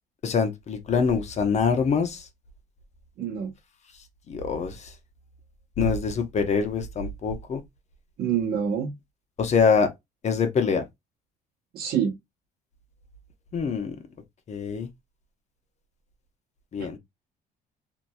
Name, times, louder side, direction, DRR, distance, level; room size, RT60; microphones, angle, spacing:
voice 1, 0.2-2.3 4.3-4.9 5.8-7.6 9.4-9.9 10.2-10.8 13.5-14.0 14.5-14.9 16.7-17.0, left 5 dB, 40° left, 0.8 m, -24 dB
voice 2, 3.2-3.5 8.2-8.9 11.7-12.1 16.8-17.0, right 8 dB, 65° right, 1.0 m, -27 dB
2.8 x 2.6 x 2.2 m
cardioid pair, 110°, 17 cm